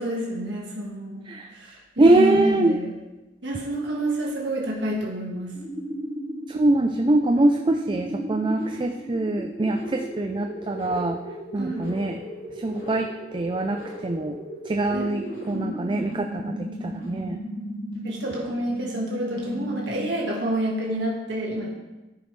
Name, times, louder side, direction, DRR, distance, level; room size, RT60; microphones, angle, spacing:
voice 1, 0.0-1.2 1.5-2.9 3.4-5.6 11.6-11.9 14.9-15.9 18.0-21.7, right 1 dB, 70° right, -3 dB, 1.6 m, -29 dB
voice 2, 2.0-2.8 6.5-11.2 11.5-12.2 12.6-14.4 14.7-17.4, right 2 dB, 25° right, 4 dB, 0.4 m, -23 dB
sound 1, 5.5-20.4, equal, 75° left, 3.0 m, -35 dB
13.5 x 5.2 x 3.2 m, 1.1 s
head